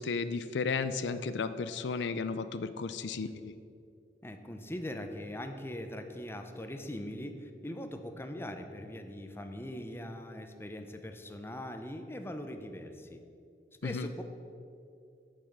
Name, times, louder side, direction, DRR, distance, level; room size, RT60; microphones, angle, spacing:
voice 1, 0.0-3.5 13.8-14.1, left 4 dB, 80° left, 12 dB, 0.4 m, -34 dB
voice 2, 4.2-13.2 13.8-14.2, left 1 dB, 15° left, 6 dB, 0.7 m, -41 dB
8.7 x 5.5 x 7.9 m, 2.5 s
head